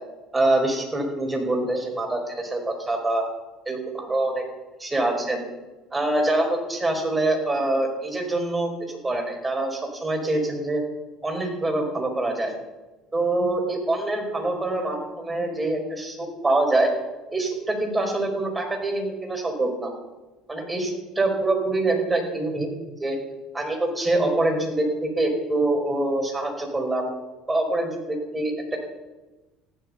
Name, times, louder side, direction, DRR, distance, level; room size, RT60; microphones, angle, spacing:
voice 1, 0.3-3.3 3.6-4.4 4.8-5.4 5.9-10.8 11.2-12.5 13.1-16.9 17.3-19.9 20.5-22.7 23.0-23.2 23.5-27.1 27.5-28.8, right 2 dB, 15° right, 2 dB, 5.0 m, -25 dB
15.0 x 12.5 x 5.7 m, 1.1 s
figure-of-eight pair, 65°, 0 cm